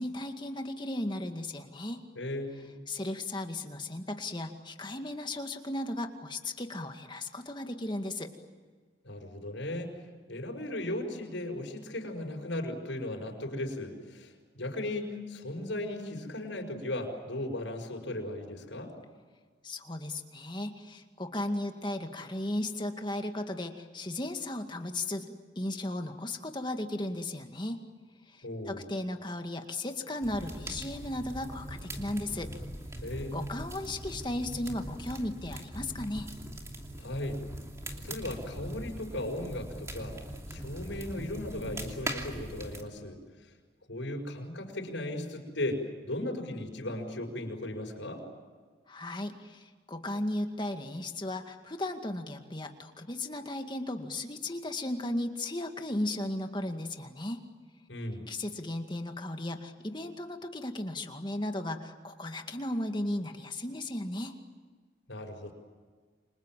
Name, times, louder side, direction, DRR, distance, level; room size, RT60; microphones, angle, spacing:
voice 1, 0.0-2.0 2.9-8.3 19.6-25.3 25.6-27.8 28.3-32.5 33.3-36.3 48.9-57.4 58.3-64.4, left 1 dB, 25° left, 5 dB, 2.1 m, -35 dB
voice 2, 2.1-2.7 9.0-10.0 10.3-18.9 28.4-28.8 33.0-33.5 36.9-37.4 37.9-40.2 40.5-43.2 43.9-48.2 57.9-58.2 65.1-65.5, left 1 dB, 75° left, 2 dB, 5.8 m, -36 dB
sound 1, 30.2-42.8, right 1 dB, 15° right, 2.8 m, -41 dB
29.5 x 26.5 x 7.5 m, 1.5 s
head